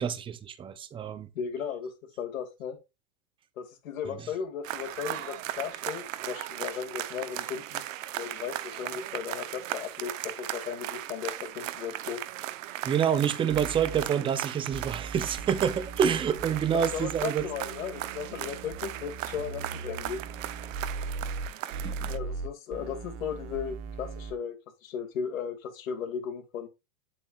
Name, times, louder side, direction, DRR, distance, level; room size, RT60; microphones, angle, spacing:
voice 1, 0.0-1.3 12.8-17.5 21.7-22.1, right 8 dB, 15° right, 0.6 m, -27 dB
voice 2, 1.3-2.8 3.6-7.8 8.2-12.2 16.7-20.2 22.1-24.5 24.8-26.7, left 7 dB, 80° left, 2.5 m, -36 dB
sound 1, 4.6-22.2, right 13 dB, 70° right, 0.9 m, -37 dB
sound 2, 13.5-14.0 14.7-24.3, right 4 dB, 45° right, 1.2 m, -39 dB
9.2 x 7.7 x 2.4 m
supercardioid pair, 135°, 40 cm